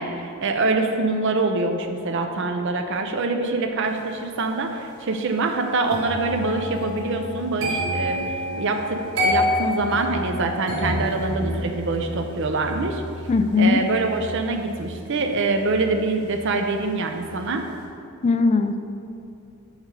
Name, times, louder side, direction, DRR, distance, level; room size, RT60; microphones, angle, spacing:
voice 1, 0.0-13.0 13.6-17.6, right 3 dB, 60° right, 5 dB, 0.6 m, -25 dB
sound 1, 5.9-16.9 17.1-17.5, left 1 dB, 75° right, 1.4 m, -29 dB
voice 2, 13.3-13.8 18.2-18.8, left 4 dB, 30° left, 8 dB, 0.3 m, -19 dB
6.5 x 5.1 x 4.8 m, 2.6 s
head